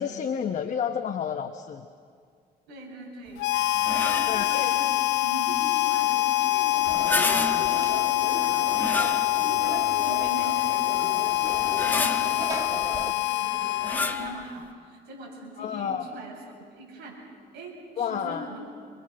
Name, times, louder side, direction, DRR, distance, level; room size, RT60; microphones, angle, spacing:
voice 1, 0.0-1.9 4.3-4.7 15.6-16.1 18.0-18.5, left 8 dB, 45° left, 6 dB, 1.1 m, -30 dB
voice 2, 2.7-3.4 3.9-17.2 17.5-18.6, right 1 dB, 80° right, -1 dB, 7.5 m, -41 dB
Harmonica, 3.4-14.4, left 16 dB, 80° left, 0.8 m, -25 dB
sound 1, 3.8-4.5 6.9-7.9 8.7-9.6 10.2-10.3 11.5-12.5 13.8-14.4, left 2 dB, 10° left, 1.4 m, -30 dB
Conversation / Crowd, 6.9-13.1, right 2 dB, 20° right, 1.4 m, -38 dB
27.0 x 21.5 x 6.4 m, 2.1 s
cardioid pair, 110°, 17 cm